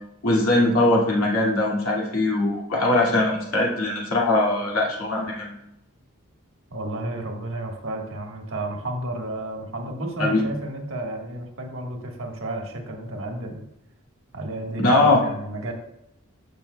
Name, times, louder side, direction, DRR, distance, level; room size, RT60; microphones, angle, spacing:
voice 1, 0.2-5.6 10.2-10.4 14.8-15.2, left 2 dB, 80° left, -3 dB, 2.2 m, -21 dB
voice 2, 6.7-13.7 14.3-15.7, right 2 dB, 65° right, 2 dB, 1.5 m, -32 dB
14.0 x 6.1 x 2.3 m, 0.81 s
head